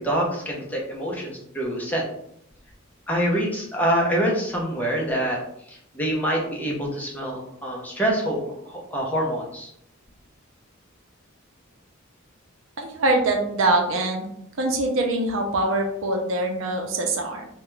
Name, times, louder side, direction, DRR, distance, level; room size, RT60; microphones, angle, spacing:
voice 1, 0.0-2.1 3.1-5.4 5.7-9.7, right 1 dB, 10° left, -3 dB, 0.6 m, -26 dB
voice 2, 12.8-14.2 14.6-17.5, right 2 dB, 70° right, 3 dB, 0.5 m, -23 dB
2.4 x 2.2 x 3.0 m, 0.73 s
head